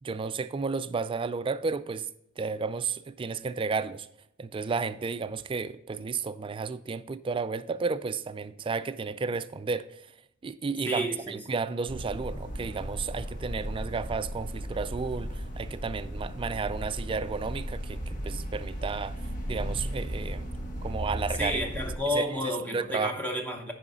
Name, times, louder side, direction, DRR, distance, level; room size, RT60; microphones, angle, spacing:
voice 1, 0.0-2.1 2.4-4.1 4.4-10.1 10.4-19.2 19.5-20.5 20.8-21.6 22.1-22.3 22.7-23.2, right 4 dB, 25° right, 0.3 m, -32 dB
voice 2, 10.9-11.4 21.4-23.7, equal, 10° left, 0.7 m, -31 dB
sound 1, 11.9-22.0, equal, 40° left, 1.2 m, -36 dB
9.7 x 5.0 x 4.0 m
head